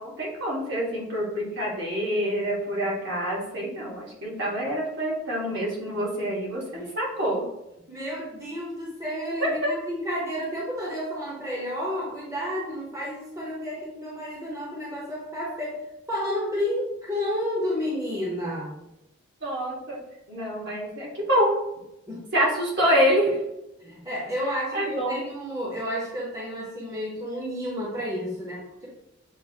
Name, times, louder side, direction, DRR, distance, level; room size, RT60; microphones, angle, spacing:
voice 1, 0.0-7.4 9.4-9.5 19.4-20.0 20.3-21.6 22.3-23.4 24.7-25.2, equal, 55° right, -4 dB, 1.5 m, -26 dB
voice 2, 7.9-15.8 16.1-18.7 22.1-22.5 23.8-28.9, equal, 15° right, -5 dB, 0.9 m, -31 dB
7.1 x 2.6 x 2.8 m, 0.87 s
head